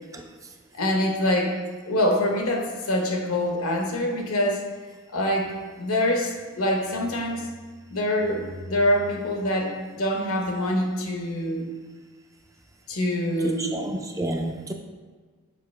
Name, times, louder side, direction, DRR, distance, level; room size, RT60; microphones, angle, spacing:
voice 1, 0.7-1.6 1.9-4.6 5.1-5.5 5.8-7.5 7.9-11.7 12.9-13.9, left 1 dB, 75° left, 1 dB, 1.0 m, -25 dB
voice 2, 13.4-14.7, right 1 dB, 15° right, 3 dB, 0.3 m, -30 dB
6.7 x 4.7 x 3.2 m, 1.5 s
head